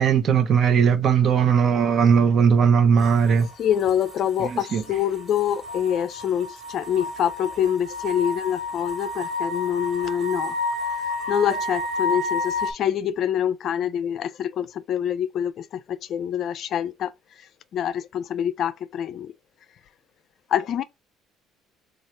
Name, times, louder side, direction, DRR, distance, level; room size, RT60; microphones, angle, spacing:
voice 1, 0.0-3.5 4.4-4.8, right 7 dB, 55° right, 0.8 m, -18 dB
sound 1, 3.0-12.7, left 2 dB, 25° right, 1.5 m, -31 dB
voice 2, 3.6-10.5 11.3-17.1 17.7-19.3 20.5-20.8, left 9 dB, 60° left, 0.4 m, -25 dB
3.2 x 2.4 x 4.0 m
supercardioid pair, 85°, 0 cm